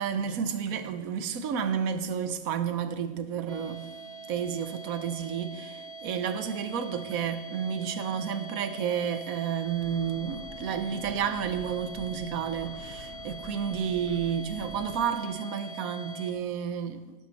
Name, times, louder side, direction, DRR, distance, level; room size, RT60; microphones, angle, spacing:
voice 1, 0.0-4.0 4.3-17.1, right 8 dB, 75° right, 1.2 m, -31 dB
sound 1, 3.5-16.3, right 2 dB, 30° right, 1.1 m, -43 dB
Breathing / Train, 9.6-15.3, left 7 dB, 60° left, 1.0 m, -46 dB
17.0 x 7.6 x 4.1 m
omnidirectional pair, 1.5 m